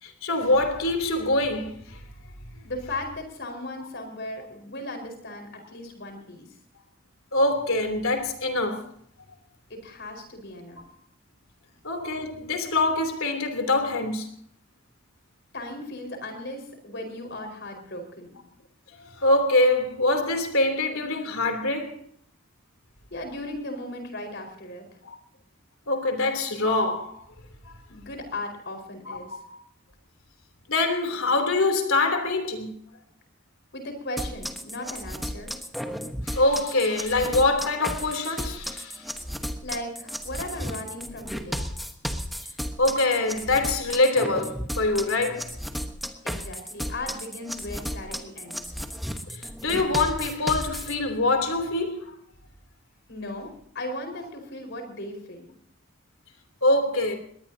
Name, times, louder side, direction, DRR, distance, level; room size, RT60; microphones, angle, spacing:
voice 1, 0.0-2.0 7.3-8.9 11.8-14.3 19.2-22.0 25.0-25.2 25.9-27.1 27.6-27.7 29.1-29.2 29.5-29.6 30.7-32.7 36.2-39.0 42.8-45.5 49.3-52.1 56.6-57.2, left 2 dB, 80° left, 3.3 m, -24 dB
voice 2, 2.6-6.5 9.7-10.8 15.5-18.4 23.1-24.8 27.9-29.4 33.7-35.5 39.6-41.7 46.2-48.7 53.1-55.5, left 1 dB, 55° left, 4.9 m, -37 dB
sound 1, 34.2-50.9, equal, ahead, 1.2 m, -34 dB
21.5 x 19.0 x 2.8 m
head